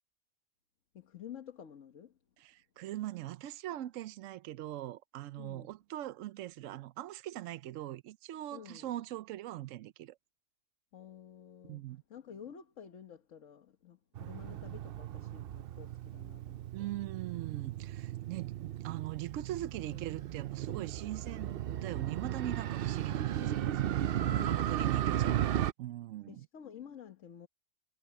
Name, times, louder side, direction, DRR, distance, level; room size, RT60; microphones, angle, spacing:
voice 1, 0.9-2.1 5.4-5.7 8.5-8.9 10.9-16.7 19.9-20.1 23.1-23.6 24.2-24.7 26.3-27.5, left 9 dB, 75° left, 1.5 m, -51 dB
voice 2, 2.4-10.2 11.6-12.0 16.7-24.0 24.3-26.5, right 14 dB, 80° right, 1.0 m, -41 dB
Motorcycle, 14.2-25.7, right 11 dB, 60° right, 0.6 m, -35 dB
omnidirectional pair, 1.3 m